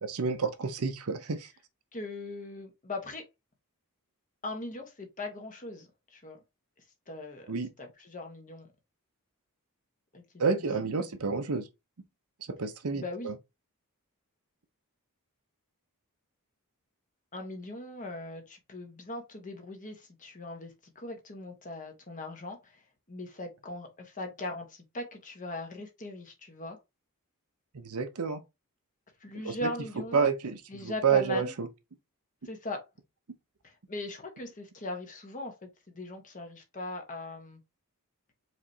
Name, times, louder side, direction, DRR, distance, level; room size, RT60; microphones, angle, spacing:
voice 1, 0.0-1.5 7.5-7.7 10.4-11.7 12.5-13.3 27.7-28.4 29.4-29.7 30.1-31.7, right 5 dB, 75° right, 0.7 m, -29 dB
voice 2, 1.9-3.2 4.4-6.4 7.1-7.5 7.8-8.7 10.1-10.2 10.6-10.7 11.0-11.1 12.9-13.3 17.3-22.8 23.1-26.8 29.2-30.3 30.7-31.5 32.4-32.8 33.6-37.6, left 2 dB, 35° left, 1.2 m, -40 dB
4.9 x 3.2 x 2.7 m
head